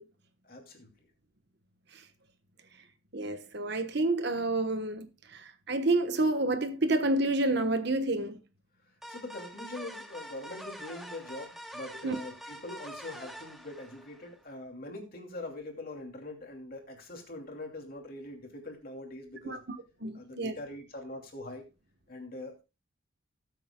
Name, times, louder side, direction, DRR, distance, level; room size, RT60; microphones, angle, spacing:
voice 1, 0.4-0.9 9.1-19.6 20.1-21.7 22.1-22.6, left 2 dB, 45° left, 2.7 m, -43 dB
voice 2, 3.1-8.4 12.0-12.2 19.4-19.8 20.0-20.6, right 2 dB, 55° right, 1.2 m, -29 dB
sound 1, 9.0-14.4, equal, ahead, 2.6 m, -45 dB
19.5 x 8.1 x 2.3 m
head